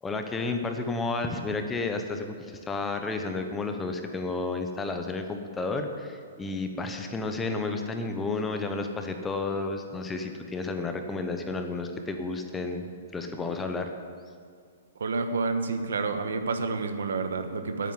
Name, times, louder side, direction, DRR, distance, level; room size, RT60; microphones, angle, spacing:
voice 1, 0.0-13.9, left 3 dB, 10° left, 5 dB, 0.9 m, -32 dB
voice 2, 15.0-17.9, right 4 dB, 85° right, 7 dB, 1.4 m, -29 dB
9.1 x 9.0 x 9.5 m, 2.1 s
hypercardioid pair, 155°, 0 cm